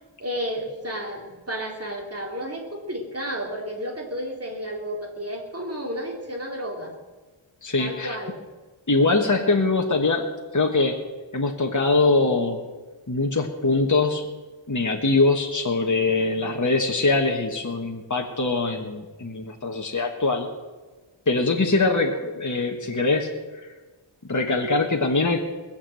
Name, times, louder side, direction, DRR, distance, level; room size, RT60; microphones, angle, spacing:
voice 1, 0.2-6.9 7.8-8.4 22.1-22.2, equal, 30° right, 0 dB, 3.0 m, -32 dB
voice 2, 7.6-8.2 8.9-10.3 10.5-11.0 11.3-12.6 13.1-14.3 14.7-20.5 21.3-23.3 23.6-23.7 24.3-25.4, left 3 dB, 40° left, 2 dB, 1.3 m, -22 dB
20.5 x 7.4 x 7.7 m, 1.3 s
wide cardioid pair, 55°, 49 cm